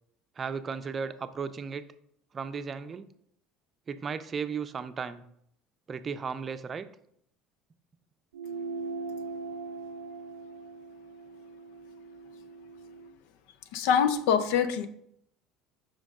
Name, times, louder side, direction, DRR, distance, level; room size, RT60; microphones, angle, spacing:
voice 1, 0.4-1.9 2.3-3.1 3.9-5.2 5.9-6.9, right 6 dB, 35° right, 0.6 m, -35 dB
sound 1, 8.3-13.2, right 3 dB, 85° right, 0.5 m, -40 dB
voice 2, 13.7-14.9, left 7 dB, 70° left, 0.6 m, -24 dB
7.3 x 5.1 x 3.7 m
hypercardioid pair, 70°, 0 cm